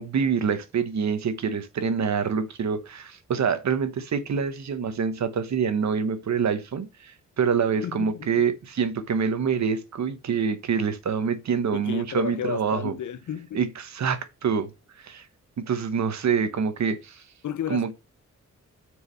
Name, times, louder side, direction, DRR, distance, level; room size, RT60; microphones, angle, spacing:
voice 1, 0.0-13.0 13.5-14.7 15.0-15.2 15.6-17.2 17.7-17.9, right 6 dB, 60° right, 1.0 m, -26 dB
voice 2, 7.8-8.4 11.7-13.6 17.4-17.9, left 9 dB, 70° left, 0.7 m, -33 dB
6.5 x 4.8 x 5.5 m
wide cardioid pair, 165°, 31 cm